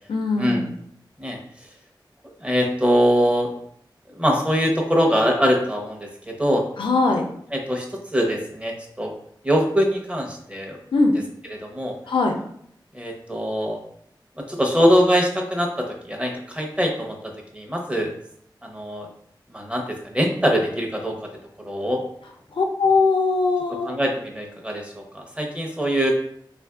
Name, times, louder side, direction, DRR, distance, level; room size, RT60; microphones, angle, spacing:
voice 1, 0.1-0.7 6.8-7.3 10.9-11.1 12.1-12.4 22.5-23.9, left 3 dB, 85° left, 3 dB, 0.5 m, -20 dB
voice 2, 2.2-3.5 4.1-6.6 7.5-7.8 8.1-9.1 9.4-10.8 11.5-11.9 12.9-13.8 14.5-17.2 17.5-18.1 18.6-19.1 19.5-21.1 21.6-22.0 23.8-26.1, equal, 15° right, 1 dB, 0.7 m, -22 dB
3.5 x 2.5 x 2.3 m, 0.68 s
cardioid pair, 50°, 8 cm